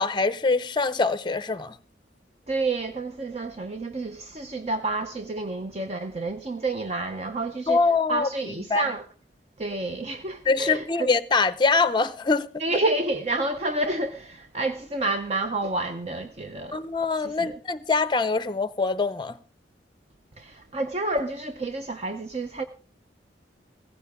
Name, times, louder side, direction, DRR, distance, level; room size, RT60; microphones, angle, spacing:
voice 1, 0.0-1.8 7.7-8.9 10.5-12.6 16.7-19.4, left 4 dB, 25° left, 0.6 m, -24 dB
voice 2, 2.5-7.8 8.1-9.0 9.6-11.1 12.6-16.8 17.2-17.5 20.4-22.6, right 2 dB, 35° right, 0.7 m, -29 dB
16.0 x 15.0 x 3.6 m
head